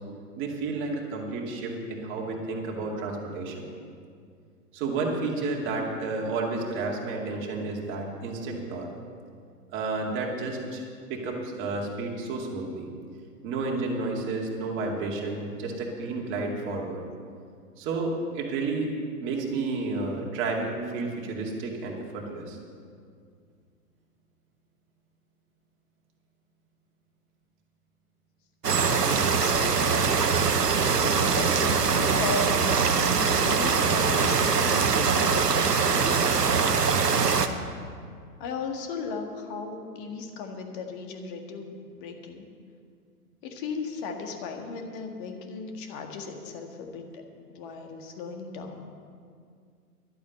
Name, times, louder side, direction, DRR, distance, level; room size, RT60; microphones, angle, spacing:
voice 1, 0.4-3.7 4.7-8.9 9.7-12.9 13.4-17.0 17.8-18.9 19.2-22.6, right 3 dB, 25° right, -1 dB, 2.3 m, -31 dB
sound 1, 28.6-37.5, right 5 dB, 80° right, 1.1 m, -23 dB
voice 2, 28.8-30.1 30.8-32.5 33.0-37.5 38.4-42.5 43.4-47.2 47.5-48.9, left 4 dB, 30° left, 4 dB, 1.7 m, -36 dB
12.0 x 8.6 x 7.8 m, 2.2 s
figure-of-eight pair, 120°, 47 cm